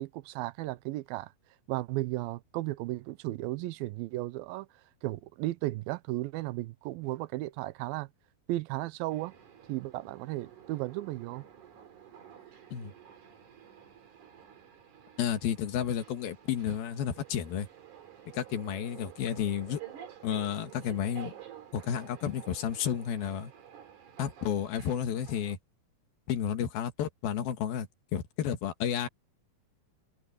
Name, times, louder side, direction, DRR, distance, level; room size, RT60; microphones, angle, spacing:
voice 1, 0.0-1.3 1.7-4.7 5.0-8.1 8.5-9.3 9.7-11.4, right 18 dB, 90° right, 2.5 m, -35 dB
sound 1, 9.1-25.6, right 9 dB, 60° right, 3.9 m, -51 dB
voice 2, 15.2-17.7 18.3-19.8 20.2-21.3 21.7-23.5 24.2-25.6 26.3-29.1, left 9 dB, 85° left, 3.6 m, -32 dB
omnidirectional pair, 4.1 m